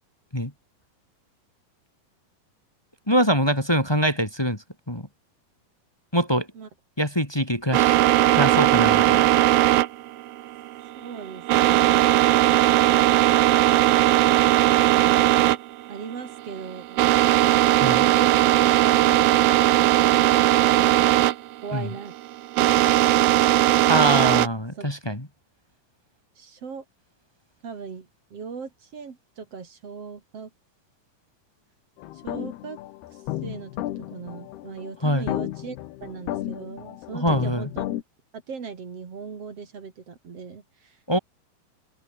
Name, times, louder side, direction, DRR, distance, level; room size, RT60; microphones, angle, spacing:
voice 1, 3.1-4.6 4.9-5.1 6.1-6.5 7.0-8.0 8.3-9.3 17.8-18.0 21.7-21.9 23.9-25.3 35.0-35.3 37.2-37.7 41.1-41.2, equal, 10° left, 1.9 m, -23 dB
sound 1, 7.7-24.5, right 15 dB, 75° right, 2.7 m, -19 dB
voice 2, 11.0-12.3 15.9-19.4 21.6-22.1 24.7-24.9 26.4-26.8 27.6-30.5 32.1-32.8 33.1-37.9 38.3-41.0, right 5 dB, 45° right, 3.2 m, -39 dB
sound 2, 32.0-38.0, left 15 dB, 90° left, 3.2 m, -33 dB
open air
omnidirectional pair, 4.5 m